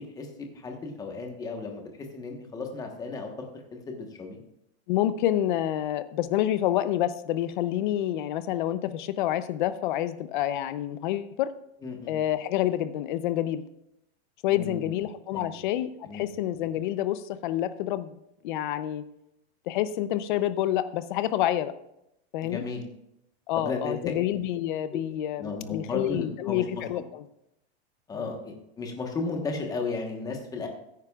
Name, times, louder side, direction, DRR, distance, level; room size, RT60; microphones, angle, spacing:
voice 1, 0.0-3.5 3.7-4.4 11.8-12.2 14.5-15.0 15.3-15.6 16.1-16.3 22.4-22.8 23.6-24.0 25.4-27.0 28.1-30.7, left 4 dB, 10° left, 3 dB, 1.2 m, -35 dB
voice 2, 4.9-11.5 12.1-13.6 14.4-18.2 18.4-19.0 19.7-21.7 22.3-22.6 23.5-27.2 28.1-28.2, left 12 dB, 50° left, 13 dB, 0.7 m, -28 dB
15.0 x 9.4 x 2.4 m, 0.81 s
supercardioid pair, 165°, 32 cm